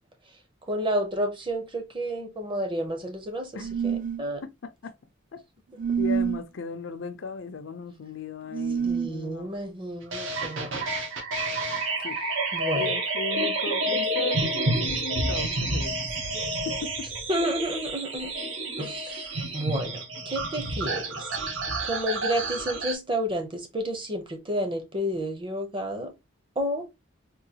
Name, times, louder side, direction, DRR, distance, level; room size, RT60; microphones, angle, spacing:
voice 1, 0.7-4.4 8.8-10.7 12.5-12.9 17.3-18.3 18.8-21.3 21.8-26.1 26.6-26.9, equal, 25° right, 0.7 m, -31 dB
sound 1, 3.6-4.2 5.8-6.4 8.5-9.1, right 7 dB, 40° right, 0.3 m, -27 dB
voice 2, 4.4-4.9 5.3-5.4 6.0-9.5 11.7-12.1 12.7-16.3 16.6-17.1, left 4 dB, 65° left, 0.5 m, -36 dB
sound 2, 10.1-22.9, right 2 dB, 70° right, 0.9 m, -29 dB
3.7 x 2.3 x 2.8 m
head